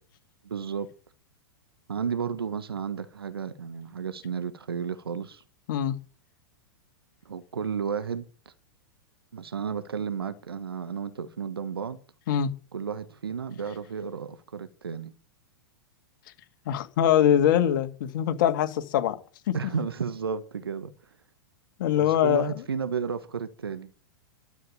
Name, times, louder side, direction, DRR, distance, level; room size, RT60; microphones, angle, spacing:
voice 1, 0.4-0.9 1.9-5.4 7.2-8.5 9.3-12.0 12.7-15.1 19.5-20.9 21.9-23.9, right 6 dB, 80° right, 1.5 m, -33 dB
voice 2, 16.7-19.2 19.5-19.6 21.8-22.5, left 10 dB, 55° left, 2.2 m, -23 dB
12.5 x 7.9 x 8.8 m
hypercardioid pair, 105°, 12 cm